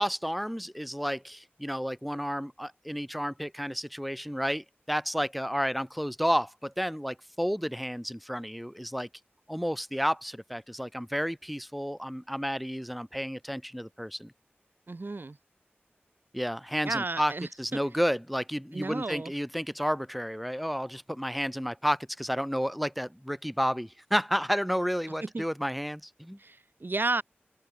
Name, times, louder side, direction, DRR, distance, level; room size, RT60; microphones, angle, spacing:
voice 1, 0.0-9.1 9.5-14.3 16.3-17.3 17.6-26.4, equal, ahead, 1.9 m, -31 dB
voice 2, 14.9-15.4 16.8-17.8 18.7-19.3 25.2-25.4 26.4-27.2, right 3 dB, 55° right, 0.9 m, -33 dB
open air
wide cardioid pair, 40°, 4 cm